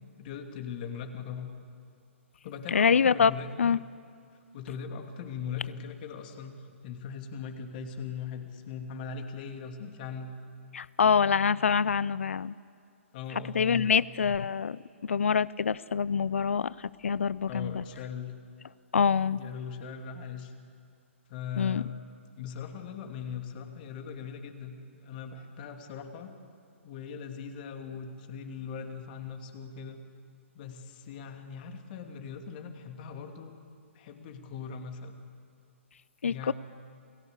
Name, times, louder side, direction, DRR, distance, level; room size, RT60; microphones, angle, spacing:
voice 1, 0.2-1.5 2.4-3.5 4.5-10.3 13.1-13.9 17.5-18.3 19.3-20.5 21.3-21.9 22.4-26.3 26.8-30.0 30.5-33.5 33.9-35.1 36.3-36.5, left 7 dB, 40° left, 5 dB, 2.7 m, -40 dB
voice 2, 2.7-3.3 3.6-3.8 10.7-12.5 13.5-17.8 18.9-19.4 21.6-21.8 36.2-36.5, left 6 dB, 70° left, 21 dB, 0.5 m, -25 dB
28.5 x 18.0 x 8.3 m, 2.4 s
figure-of-eight pair, 130°, 7 cm